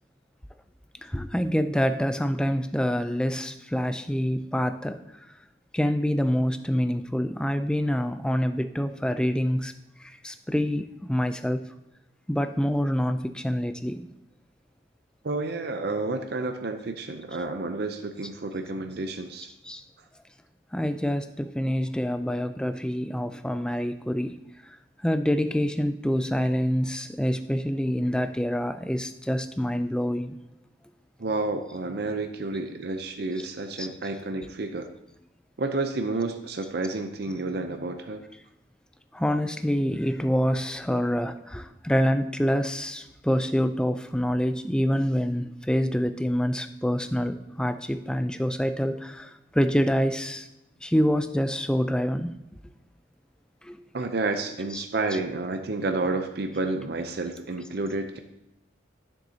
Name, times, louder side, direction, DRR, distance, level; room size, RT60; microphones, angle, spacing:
voice 1, 1.0-5.0 5.7-9.7 10.0-11.6 12.3-14.1 19.6-19.8 20.7-24.3 25.0-30.4 33.8-33.9 34.4-34.5 39.1-50.5 50.8-52.4 53.6-53.8 54.7-54.8 55.1-55.2, equal, 5° left, 9 dB, 0.4 m, -26 dB
voice 2, 15.2-19.5 31.2-34.9 35.6-38.2 53.9-58.2, right 3 dB, 55° right, 6 dB, 0.6 m, -30 dB
12.5 x 7.3 x 2.8 m, 0.88 s
head